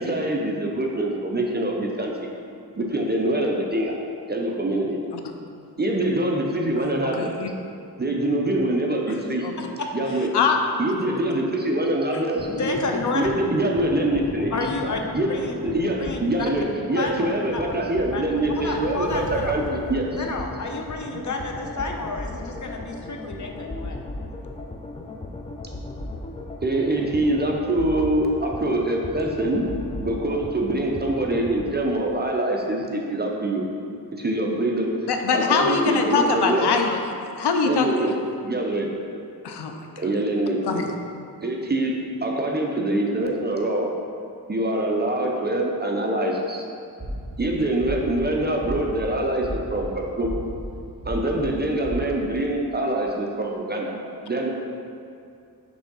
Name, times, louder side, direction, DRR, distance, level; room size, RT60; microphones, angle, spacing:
voice 1, 0.0-2.3 2.8-4.0 4.3-5.0 5.8-7.3 8.0-9.5 9.9-10.3 10.8-12.6 13.1-14.5 15.1-15.4 15.6-20.1 26.6-29.7 30.0-33.6 34.1-35.0 35.3-36.7 37.6-38.2 38.4-38.9 40.0-40.9 41.4-43.9 44.5-46.7 47.4-50.3 51.1-53.9 54.3-54.5, right 1 dB, 25° right, 0 dB, 0.6 m, -24 dB
voice 2, 7.2-7.5 9.4-9.5 10.3-10.6 12.5-12.7 35.1-37.0 37.4-37.9 39.4-39.8 40.6-40.9, left 5 dB, 90° left, 4 dB, 0.6 m, -22 dB
voice 3, 9.8-10.3 12.6-13.2 14.5-15.0 15.3-15.5 16.0-16.5 16.9-17.2 17.5-17.6 18.1-19.5 20.2-24.0, left 3 dB, 50° left, 2 dB, 0.7 m, -30 dB
sound 1, 12.4-31.6, left 2 dB, 15° left, 0.4 m, -36 dB
sound 2, 18.2-20.9, right 3 dB, 60° right, 0.8 m, -38 dB
sound 3, 47.0-47.4 47.8-48.2 48.6-49.0 49.4-49.8 50.2-50.6 51.0-51.4 51.8-52.0, right 1 dB, 5° right, 1.4 m, -32 dB
6.1 x 3.5 x 5.4 m, 2.5 s
wide cardioid pair, 105°, 39 cm